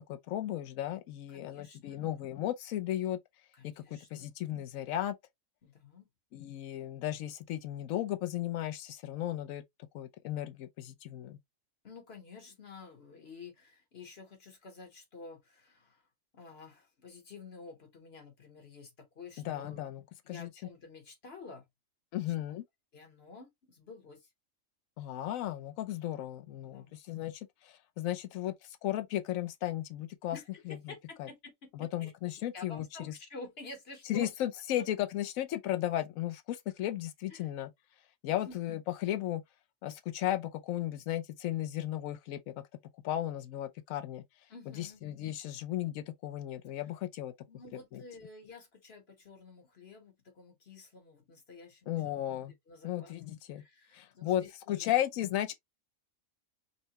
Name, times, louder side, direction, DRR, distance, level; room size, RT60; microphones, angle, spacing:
voice 1, 0.0-3.2 3.6-3.8 4.1-5.1 6.3-9.6 9.9-11.4 19.4-20.5 22.1-22.6 25.0-30.4 30.7-30.9 31.2-31.3 31.7-33.1 34.1-37.7 38.2-39.4 39.8-42.6 43.0-44.2 44.8-47.3 47.9-48.0 51.9-52.5 52.8-53.6 53.9-55.5, left 13 dB, 85° left, 1.0 m, -35 dB
voice 2, 1.3-2.1 3.5-4.1 5.6-6.1 11.8-16.0 16.3-19.9 20.2-21.6 22.1-22.3 22.9-24.3 26.6-26.9 30.3-32.1 32.5-34.3 37.3-37.5 38.3-38.6 44.5-45.0 47.5-51.9 52.7-53.1 53.5-54.9, left 3 dB, 50° left, 1.2 m, -50 dB
5.6 x 2.2 x 2.8 m
omnidirectional pair, 1.4 m